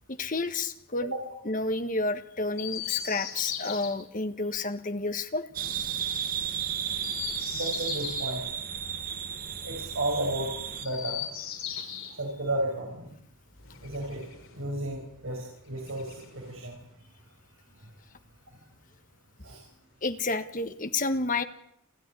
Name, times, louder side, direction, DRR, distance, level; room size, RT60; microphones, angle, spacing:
voice 1, 0.1-1.1 1.4-5.4 11.7-11.8 20.0-21.4, left 3 dB, 35° left, 9 dB, 1.5 m, -30 dB
Chirp tweet, 2.5-3.9 6.9-8.3 10.7-12.1 13.6-14.6 15.7-16.6, left 9 dB, 70° left, 5.8 m, -38 dB
sound 1, 5.5-10.9, right 8 dB, 40° right, 1.5 m, -33 dB
voice 2, 7.5-8.4 9.6-10.5 10.8-11.2 12.2-13.1 13.8-14.3 14.6-16.8 19.4-19.6, right 1 dB, 65° right, 0 dB, 5.9 m, -33 dB
29.5 x 13.5 x 10.0 m, 0.75 s
head